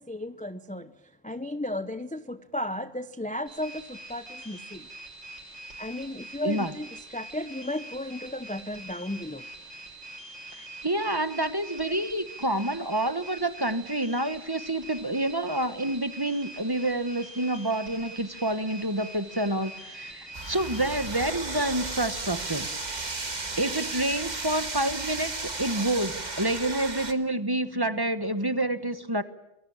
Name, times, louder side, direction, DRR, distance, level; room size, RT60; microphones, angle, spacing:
voice 1, 0.1-0.9 1.2-4.6 5.8-6.9 7.1-9.4, left 1 dB, 10° left, 11 dB, 0.7 m, -34 dB
sound 1, 3.5-21.1, right 2 dB, 70° right, 6.6 m, -44 dB
voice 2, 10.6-22.7 23.6-29.2, right 1 dB, 20° right, 12 dB, 1.2 m, -28 dB
sound 2, 20.3-27.1, right 3 dB, 35° right, 1.8 m, -34 dB
27.5 x 21.5 x 8.8 m, 0.88 s
omnidirectional pair, 1.3 m